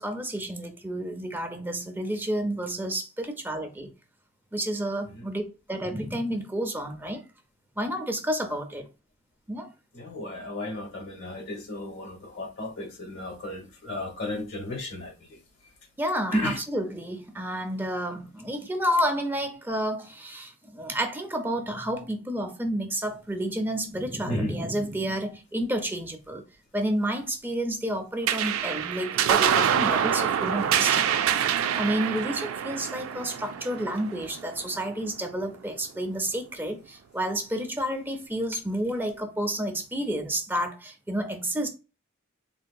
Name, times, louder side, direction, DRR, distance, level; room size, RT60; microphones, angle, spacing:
voice 1, 0.0-3.9 4.5-5.4 5.7-7.2 7.8-8.8 9.5-9.7 16.0-26.4 26.7-31.3 31.8-41.7, right 1 dB, 10° right, 0.5 m, -30 dB
voice 2, 9.9-15.4 16.3-16.6 24.3-24.5, left 1 dB, 65° left, 1.2 m, -33 dB
sound 1, 28.3-35.0, right 8 dB, 75° right, 0.3 m, -26 dB
3.4 x 2.8 x 2.3 m
head